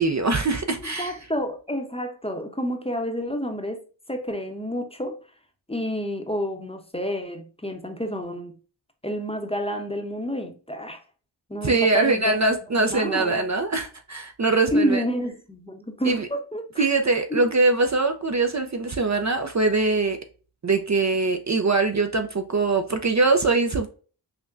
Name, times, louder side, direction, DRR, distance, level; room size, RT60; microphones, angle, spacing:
voice 1, 0.0-1.2 11.6-15.0 16.1-16.3 16.8-20.2 20.6-23.9, right 3 dB, 40° right, 0.5 m, -22 dB
voice 2, 0.8-3.8 4.1-5.2 5.7-8.5 9.0-11.0 11.5-13.4 14.7-16.9 17.3-17.4, equal, 15° left, 0.8 m, -29 dB
5.7 x 2.1 x 2.5 m
wide cardioid pair, 80°, 45 cm